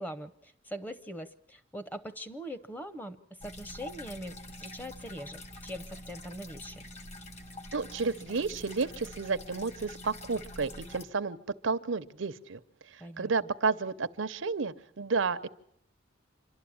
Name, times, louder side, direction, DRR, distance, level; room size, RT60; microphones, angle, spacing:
voice 1, 0.0-3.2 3.4-6.9 13.0-13.3, equal, 10° left, 12 dB, 0.8 m, -42 dB
sound 1, 3.4-11.1, left 1 dB, 35° left, 1.5 m, -46 dB
voice 2, 7.7-11.4 11.6-12.6 13.2-15.5, right 4 dB, 90° right, 13 dB, 0.8 m, -31 dB
27.0 x 12.0 x 8.6 m, 0.69 s
head